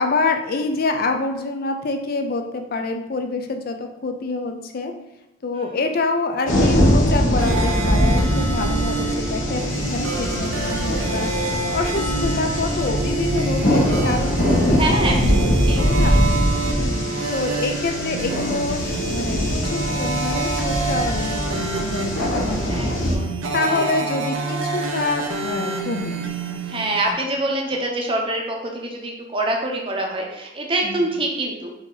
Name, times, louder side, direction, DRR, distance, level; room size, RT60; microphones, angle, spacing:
voice 1, 0.0-4.9 5.4-11.3 11.7-16.2 16.8-23.1 23.5-26.4 30.8-31.1, left 3 dB, 50° left, 5 dB, 0.5 m, -26 dB
sound 1, 6.5-23.2, equal, 80° left, 1.0 m, -22 dB
sound 2, 7.4-27.1, right 3 dB, 90° right, 0.5 m, -27 dB
voice 2, 14.7-15.3 15.7-16.2 16.6-17.0 22.7-23.3 23.6-23.9 26.7-31.7, right 1 dB, 25° right, 0 dB, 0.7 m, -26 dB
4.3 x 2.7 x 3.8 m, 0.91 s
head